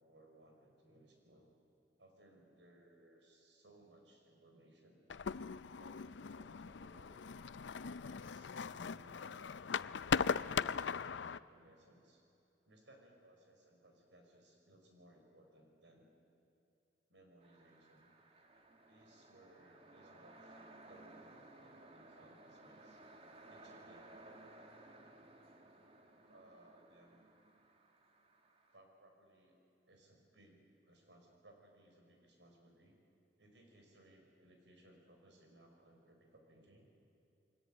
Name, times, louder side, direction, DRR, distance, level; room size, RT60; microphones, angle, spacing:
voice 1, 0.0-1.6 2.0-5.0 5.7-7.4 7.8-9.6 10.1-12.2 12.6-16.1 17.1-18.2 18.9-23.0 23.5-24.3 26.3-27.2 28.7-33.0 33.4-36.9, right 1 dB, 75° right, 2 dB, 5.5 m, -64 dB
sound 1, 5.1-11.4, left 6 dB, 80° left, 0.5 m, -39 dB
sound 2, 17.4-28.8, right 2 dB, 35° right, 2.1 m, -59 dB
29.0 x 21.5 x 9.0 m, 2.8 s
head